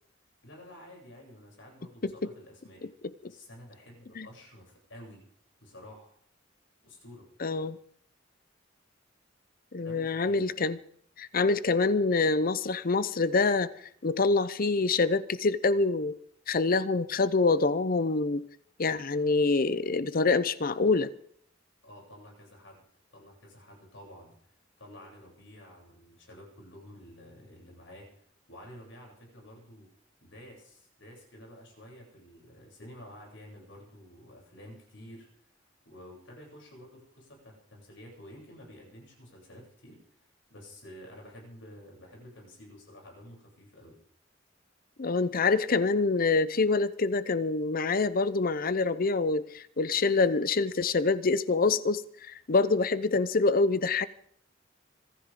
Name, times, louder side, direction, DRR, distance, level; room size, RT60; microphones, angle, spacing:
voice 1, 0.4-2.9 3.2-5.2 5.6-6.1 6.8-7.3 9.8-10.4 21.8-22.8 23.1-29.9 30.2-44.0, left 1 dB, 80° left, 8.0 m, -50 dB
voice 2, 7.4-7.8 9.7-10.8 11.2-13.7 14.0-16.2 16.5-18.4 18.8-21.1 45.0-54.1, left 3 dB, 50° left, 0.7 m, -26 dB
25.5 x 14.0 x 3.8 m
head